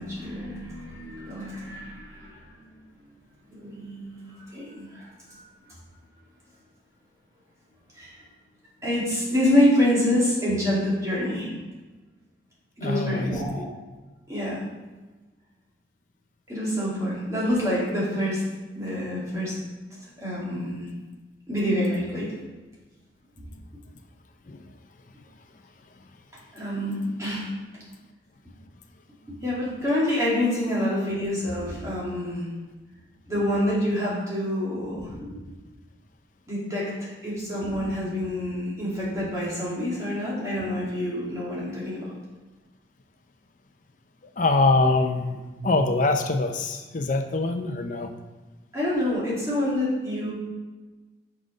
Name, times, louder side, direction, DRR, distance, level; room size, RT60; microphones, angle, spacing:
voice 1, 0.0-2.6 3.5-5.4 7.9-8.1 8.8-11.5 12.8-13.7 14.3-14.6 16.5-18.4 18.7-19.6 20.2-20.9 21.5-22.3 26.5-27.5 29.3-32.5 33.3-35.4 36.5-42.1 45.6-45.8 48.7-50.3, left 1 dB, 15° right, -8 dB, 2.4 m, -27 dB
voice 2, 12.8-13.3 24.5-24.7 44.4-48.1, left 3 dB, 45° left, 5 dB, 0.5 m, -24 dB
6.1 x 5.1 x 5.1 m, 1.2 s
head